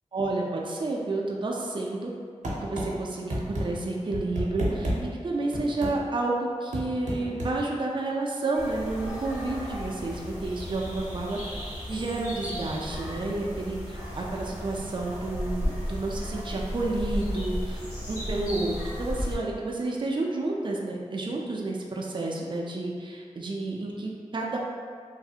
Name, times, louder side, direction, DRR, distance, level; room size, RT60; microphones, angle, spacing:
voice 1, 0.1-2.1 2.6-11.6 11.9-17.8 18.1-18.7 19.0-24.6, right 2 dB, 40° right, -2 dB, 0.4 m, -30 dB
sound 1, 2.4-2.9 3.3-3.6 4.1-5.0 5.5-5.9 6.7-7.5, right 1 dB, 75° right, 0.7 m, -29 dB
sound 2, 8.5-19.4, equal, 90° left, 0.9 m, -34 dB
3.1 x 2.0 x 2.7 m, 2.1 s
cardioid pair, 40°, 13 cm